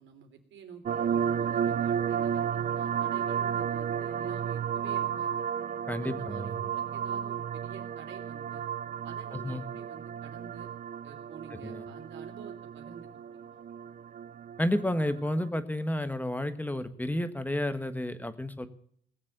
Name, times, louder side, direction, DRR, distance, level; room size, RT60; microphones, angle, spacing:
voice 1, 0.0-5.4 6.0-8.6 9.0-10.7 11.0-13.6, right 7 dB, 70° right, 4 dB, 3.3 m, -49 dB
sound 1, 0.9-15.4, right 8 dB, 40° right, 0.5 m, -33 dB
voice 2, 5.9-6.5 9.3-9.6 11.6-11.9 14.6-18.7, left 1 dB, 10° left, 10 dB, 1.4 m, -31 dB
19.0 x 7.4 x 6.7 m, 0.66 s
cardioid pair, 90°, 20 cm